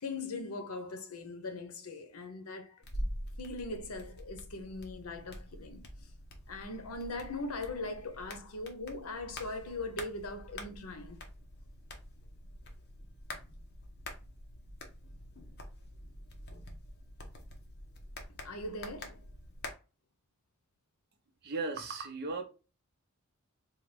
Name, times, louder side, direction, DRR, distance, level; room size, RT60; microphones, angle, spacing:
voice 1, 0.0-2.8 3.4-5.9 6.5-11.2 18.4-19.2, left 2 dB, 85° left, 0.8 m, -40 dB
sound 1, 2.8-19.7, left 1 dB, 50° left, 0.9 m, -46 dB
voice 2, 21.4-22.4, right 3 dB, 50° right, 0.7 m, -36 dB
4.0 x 2.3 x 3.3 m
head